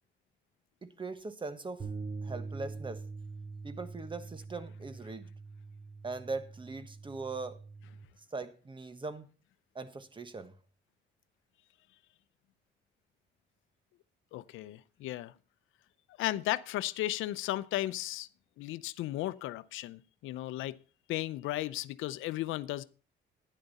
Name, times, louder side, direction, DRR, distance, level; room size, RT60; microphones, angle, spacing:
voice 1, 0.8-1.9 2.2-3.0 3.6-5.3 6.0-7.6 8.3-9.3 9.7-10.6, right 3 dB, 25° right, 1.3 m, -40 dB
sound 1, 1.8-8.0, right 4 dB, 40° right, 3.6 m, -44 dB
voice 2, 14.3-15.3 16.2-18.3 18.6-20.7 21.1-22.8, left 15 dB, 90° left, 0.6 m, -35 dB
11.5 x 10.0 x 4.1 m
cardioid pair, 90°, 20 cm